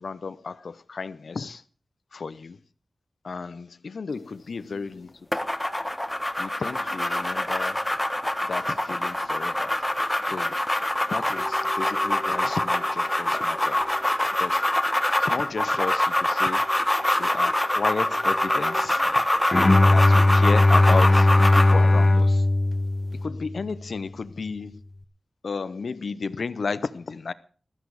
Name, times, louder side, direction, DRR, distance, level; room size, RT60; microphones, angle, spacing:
voice 1, 0.0-1.6 2.1-2.6 3.2-5.1 6.4-7.9 8.5-9.7 10.2-10.6 11.1-13.8 14.4-14.6 15.2-16.6 17.2-19.0 19.9-22.4 23.2-24.8 25.4-27.3, left 4 dB, 75° left, 0.7 m, -33 dB
sound 1, 5.3-21.8, left 1 dB, 10° left, 1.5 m, -25 dB
sound 2, 11.3-15.3 16.6-18.8, equal, 30° right, 4.9 m, -45 dB
Bowed string instrument, 19.5-23.7, left 2 dB, 35° left, 1.4 m, -18 dB
15.5 x 13.0 x 4.8 m
wide cardioid pair, 70°, 0 cm